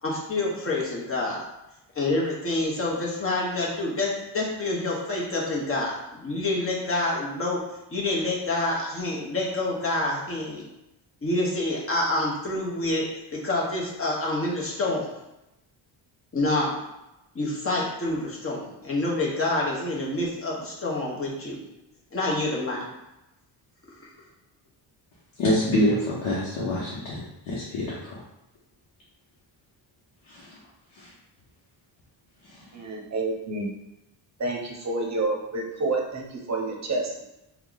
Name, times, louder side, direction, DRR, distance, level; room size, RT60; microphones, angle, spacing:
voice 1, 0.0-1.4 1.9-7.6 7.9-10.6 11.2-13.0 13.3-15.1 16.3-16.8 17.3-21.6 22.1-22.9 24.0-24.1, left 2 dB, 30° left, -4 dB, 1.1 m, -27 dB
voice 2, 25.4-28.2 30.3-30.5 31.0-31.1, left 1 dB, 90° left, -7 dB, 0.9 m, -26 dB
voice 3, 32.7-33.7 34.4-37.2, right 2 dB, 35° right, 0 dB, 0.8 m, -29 dB
2.9 x 2.4 x 3.8 m, 0.91 s
cardioid pair, 105°, 47 cm